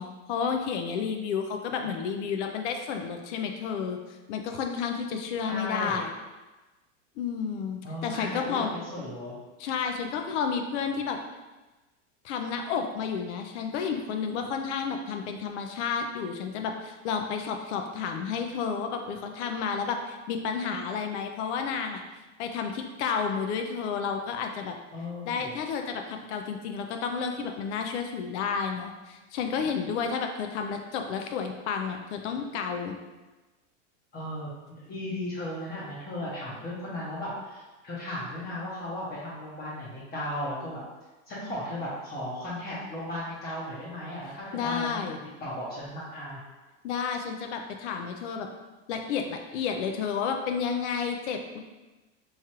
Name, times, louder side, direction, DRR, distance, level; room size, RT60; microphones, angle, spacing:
voice 1, 0.0-4.0 4.3-6.1 7.2-8.7 9.6-11.2 12.2-22.0 22.4-24.8 25.3-33.0 44.5-45.2 46.8-48.5 48.9-51.6, left 6 dB, 65° left, 4 dB, 0.5 m, -31 dB
voice 2, 5.4-6.0 7.8-9.3 24.9-25.6 34.1-40.8 41.3-46.4, left 1 dB, 25° left, -7 dB, 0.8 m, -36 dB
3.2 x 2.4 x 4.3 m, 1.2 s
supercardioid pair, 140°, 37 cm